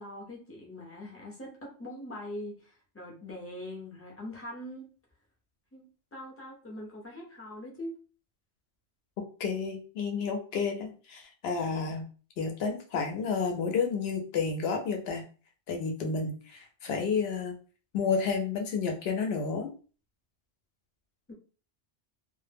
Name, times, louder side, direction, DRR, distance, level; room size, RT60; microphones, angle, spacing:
voice 1, 0.0-4.9 5.7-5.8 6.1-7.9 21.3-21.4, left 1 dB, 20° left, -2 dB, 0.4 m, -42 dB
voice 2, 9.4-12.1 12.4-15.2 15.7-17.5 17.9-19.7, left 5 dB, 70° left, 3 dB, 0.8 m, -31 dB
2.1 x 2.1 x 3.3 m, 0.38 s
omnidirectional pair, 1.2 m